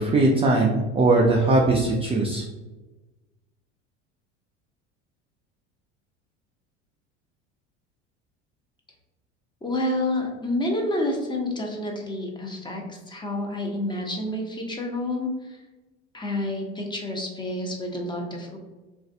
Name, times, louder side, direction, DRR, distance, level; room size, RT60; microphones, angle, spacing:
voice 1, 0.0-2.4, right 2 dB, 20° right, -1 dB, 0.3 m, -20 dB
voice 2, 9.6-15.6 16.1-18.6, left 1 dB, 15° left, 0 dB, 0.7 m, -29 dB
3.1 x 2.4 x 2.5 m, 1.1 s
hypercardioid pair, 80°, 34 cm